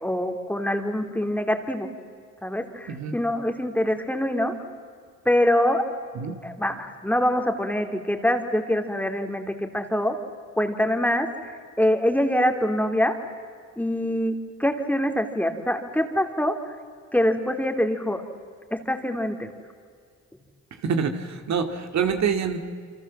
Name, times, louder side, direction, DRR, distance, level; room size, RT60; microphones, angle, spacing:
voice 1, 0.0-1.9 2.4-4.5 5.2-5.8 6.4-9.4 9.7-10.1 10.6-13.1 13.8-16.5 17.1-18.2 18.7-19.5, left 1 dB, 5° left, 5 dB, 2.9 m, -24 dB
voice 2, 2.9-3.2 6.1-6.4 20.7-22.6, right 6 dB, 65° right, 6 dB, 2.3 m, -26 dB
27.5 x 26.0 x 7.4 m, 2.1 s
cardioid pair, 90°, 30 cm